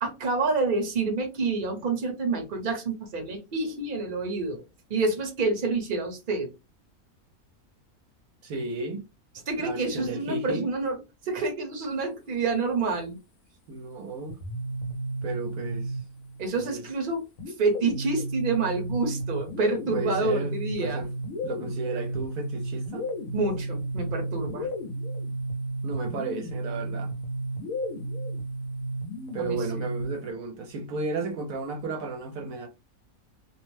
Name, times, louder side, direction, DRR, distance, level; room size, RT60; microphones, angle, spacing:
voice 1, 0.0-4.6 4.9-6.5 9.5-13.2 16.4-17.2 17.6-21.1 23.3-24.7 29.4-29.9, right 3 dB, 40° right, 0.9 m, -28 dB
voice 2, 8.4-9.0 9.6-10.7 13.7-14.4 15.2-16.0 16.6-16.8 19.9-21.1 21.4-23.1 25.8-27.1 29.3-32.7, right 3 dB, 75° right, 1.0 m, -34 dB
sound 1, 14.3-16.4 17.4-30.3, right 1 dB, 65° left, 1.0 m, -33 dB
2.6 x 2.1 x 3.1 m
omnidirectional pair, 1.6 m